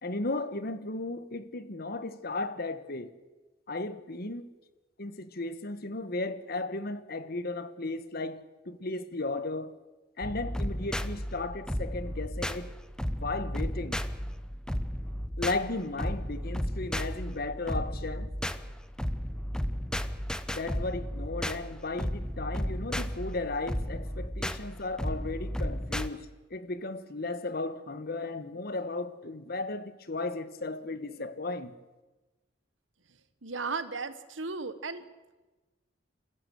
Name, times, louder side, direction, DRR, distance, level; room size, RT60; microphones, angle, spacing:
voice 1, 0.0-3.1 3.7-4.5 5.0-9.7 10.2-12.7 13.1-14.0 15.4-18.3 20.5-31.7, left 2 dB, 55° left, 1.3 m, -35 dB
sound 1, 10.2-26.1, equal, 5° left, 0.8 m, -34 dB
voice 2, 33.4-35.0, right 4 dB, 90° right, 1.5 m, -35 dB
28.0 x 15.0 x 7.9 m
head